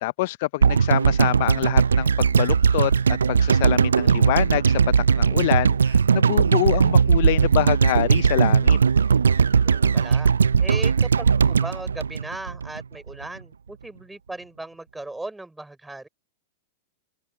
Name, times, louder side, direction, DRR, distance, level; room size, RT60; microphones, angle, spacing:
voice 1, 0.0-4.8 5.2-8.8, left 20 dB, 55° left, 0.5 m, -26 dB
sound 1, 0.6-12.8 13.1-13.2, right 6 dB, 80° right, 0.4 m, -19 dB
voice 2, 9.6-10.3 10.6-16.1, right 2 dB, 5° right, 4.4 m, -37 dB
figure-of-eight pair, 100°, 0 cm